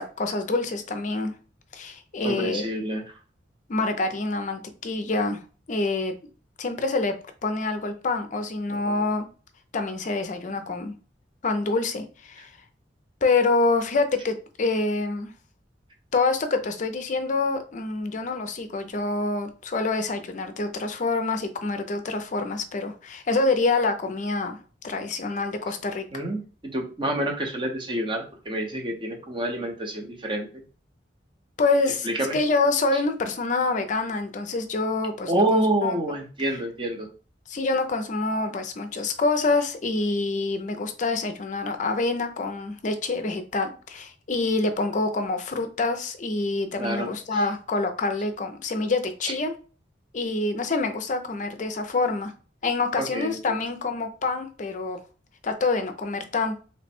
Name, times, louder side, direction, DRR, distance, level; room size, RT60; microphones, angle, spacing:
voice 1, 0.0-1.3 1.7-2.6 3.7-5.4 5.7-6.1 6.6-7.1 7.4-9.3 9.7-10.9 11.4-12.5 13.2-15.3 16.1-24.6 24.8-26.0 31.6-35.9 37.5-49.5 50.1-52.3 52.6-55.0 55.4-56.6, left 3 dB, 45° left, 8 dB, 0.5 m, -26 dB
voice 2, 2.2-3.0 8.9-9.0 26.1-26.4 26.7-30.5 32.0-32.4 35.3-37.1 46.8-47.1 53.0-53.6, right 1 dB, 30° right, 2 dB, 0.7 m, -27 dB
3.2 x 2.1 x 4.2 m, 0.37 s
head